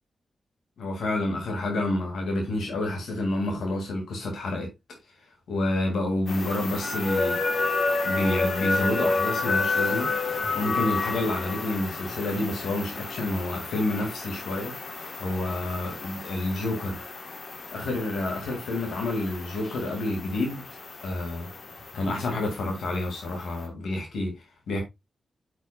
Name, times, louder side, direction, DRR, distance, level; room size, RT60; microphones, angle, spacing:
voice 1, 0.8-4.7 5.5-7.4 8.0-10.1 10.5-14.7 15.2-17.0 17.7-20.6 21.0-21.5 21.9-24.8, left 2 dB, 90° left, 2.3 m, -29 dB
sound 1, 6.3-23.6, left 3 dB, 50° left, 1.4 m, -31 dB
8.7 x 6.1 x 2.3 m
wide cardioid pair, 100°, 0 cm